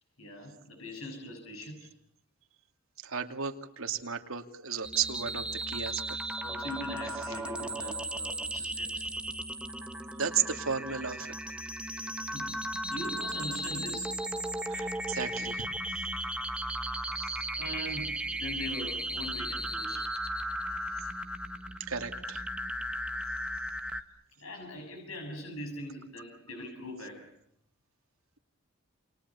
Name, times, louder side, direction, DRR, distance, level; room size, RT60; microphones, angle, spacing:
voice 1, 0.2-1.9 6.4-9.0 12.3-12.5 12.9-14.1 16.8-17.1 17.6-20.1 24.4-27.3, left 1 dB, 85° left, 4 dB, 6.8 m, -41 dB
voice 2, 3.0-6.2 10.1-11.4 14.7-15.7 17.2-17.3 21.9-22.4, right 7 dB, 80° right, 6 dB, 2.6 m, -34 dB
sound 1, 4.8-24.0, right 1 dB, 5° right, 1.4 m, -36 dB
28.5 x 28.0 x 7.1 m, 0.67 s
head